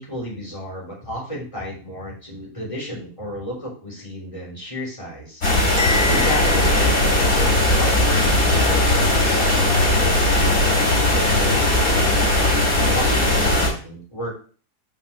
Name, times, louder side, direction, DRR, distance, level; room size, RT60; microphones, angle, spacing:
voice 1, 0.0-5.4 6.1-10.3 11.1-11.5 12.9-14.3, equal, 20° left, -5 dB, 3.7 m, -33 dB
sound 1, 5.4-13.7, left 1 dB, 55° left, 4.0 m, -18 dB
Bell, 5.8-7.8, left 2 dB, 20° right, 3.6 m, -29 dB
5.5 x 5.4 x 6.6 m, 0.41 s
omnidirectional pair, 1.7 m